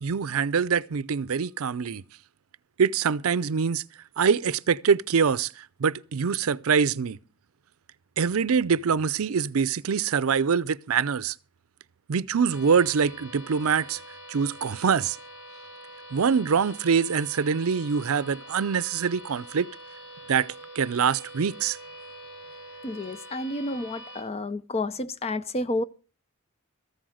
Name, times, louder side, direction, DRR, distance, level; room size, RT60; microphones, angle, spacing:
voice 1, 0.0-2.0 2.8-3.8 4.2-5.5 5.8-7.2 8.2-11.3 12.1-14.0 14.3-15.2 16.1-19.7 20.3-20.5 20.8-21.8, right 6 dB, 75° right, 0.5 m, -24 dB
sound 1, 12.5-24.2, right 1 dB, 65° left, 3.5 m, -45 dB
voice 2, 22.8-25.8, left 2 dB, 30° left, 0.6 m, -30 dB
14.5 x 7.8 x 6.3 m
head